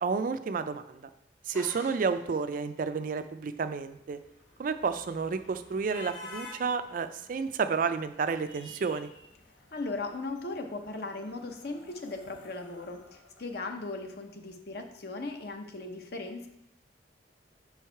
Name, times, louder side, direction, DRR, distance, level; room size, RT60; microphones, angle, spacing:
voice 1, 0.0-1.0 1.5-4.2 4.6-9.1, right 5 dB, 45° right, 11 dB, 0.3 m, -31 dB
sound 1, 1.5-2.6, left 1 dB, 15° left, 0.7 m, -48 dB
sound 2, 3.8-14.1, left 2 dB, 75° left, 1.1 m, -51 dB
voice 2, 9.7-16.5, left 3 dB, 55° left, 5 dB, 0.7 m, -38 dB
5.5 x 4.6 x 4.5 m, 0.83 s
head